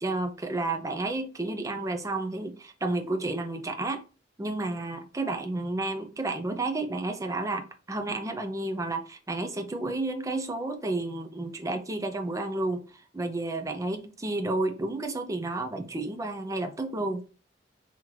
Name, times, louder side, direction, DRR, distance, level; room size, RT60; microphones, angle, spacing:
voice 1, 0.0-4.0 4.4-17.2, right 2 dB, 20° right, 0.5 m, -31 dB
3.0 x 2.9 x 3.8 m
head